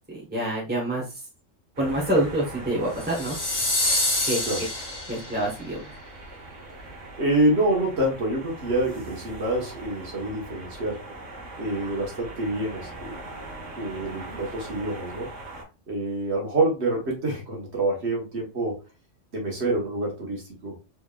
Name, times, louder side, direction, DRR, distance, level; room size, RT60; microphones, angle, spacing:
voice 1, 0.1-1.2 1.8-3.4 4.3-4.4 5.1-5.9, right 1 dB, 10° right, -4 dB, 1.2 m, -26 dB
sound 1, 1.8-15.6, right 2 dB, 75° right, 1.6 m, -41 dB
sound 2, 3.0-5.5, left 1 dB, 55° left, 1.6 m, -26 dB
voice 2, 7.2-11.0 11.6-13.2 13.5-15.3 15.9-18.8 19.3-20.7, right 1 dB, 60° right, -2 dB, 1.8 m, -27 dB
4.3 x 3.5 x 2.4 m, 0.30 s
omnidirectional pair, 1.3 m